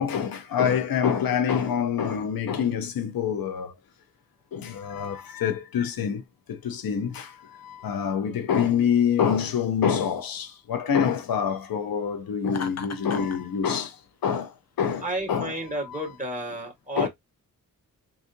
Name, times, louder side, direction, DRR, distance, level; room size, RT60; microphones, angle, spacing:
voice 1, 0.0-3.8 4.5-6.2 6.5-14.0 14.2-15.5 17.0-17.1, left 7 dB, 85° left, 0.8 m, -26 dB
Laughter, 12.5-13.4, left 6 dB, 50° left, 0.8 m, -36 dB
voice 2, 15.0-17.1, right 1 dB, 25° right, 2.1 m, -32 dB
4.0 x 2.5 x 2.6 m
cardioid pair, 75°, 34 cm